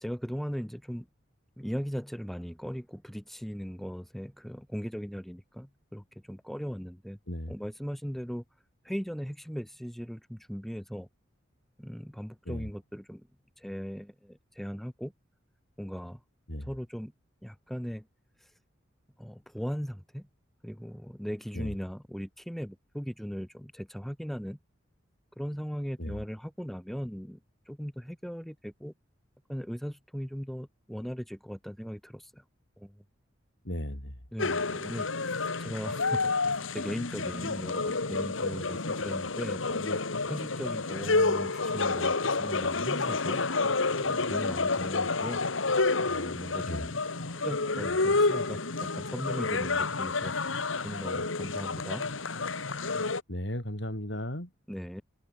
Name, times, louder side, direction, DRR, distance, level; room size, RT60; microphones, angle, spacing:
voice 1, 0.0-1.1 1.6-7.2 7.5-8.4 8.8-11.1 11.8-13.3 13.6-15.1 15.8-16.2 16.6-17.1 17.4-18.1 19.2-20.3 20.6-24.6 25.4-27.4 27.7-28.9 29.5-32.4 32.8-33.0 34.3-36.2 36.5-40.0 40.3-43.4 44.0-45.4 46.1-47.0 47.3-50.3 50.8-52.0 54.7-55.0, equal, ahead, 2.1 m, -38 dB
voice 2, 33.6-34.1 46.7-46.9 53.3-54.5, left 1 dB, 65° left, 5.6 m, -35 dB
sound 1, 34.4-53.2, left 3 dB, 90° left, 2.0 m, -29 dB
head